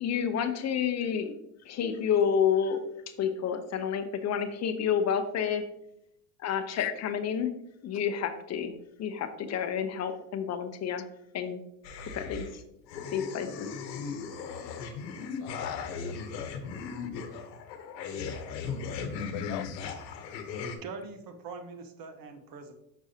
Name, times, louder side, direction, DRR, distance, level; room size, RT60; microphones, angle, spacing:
voice 1, 0.0-1.4 1.6-2.8 3.2-5.6 6.4-7.5 7.8-8.7 9.0-11.0 11.3-11.6 12.0-12.6 13.1-13.7, left 7 dB, 35° left, 9 dB, 0.7 m, -29 dB
voice 2, 6.8-7.1 15.2-16.2 19.2-19.9, left 15 dB, 65° left, 14 dB, 0.6 m, -39 dB
sound 1, 11.8-12.5 12.9-20.8, left 5 dB, 90° left, 1.0 m, -37 dB
voice 3, 20.8-22.7, right 4 dB, 45° right, 7 dB, 1.1 m, -42 dB
6.2 x 6.2 x 2.8 m, 0.81 s
supercardioid pair, 100°, 49 cm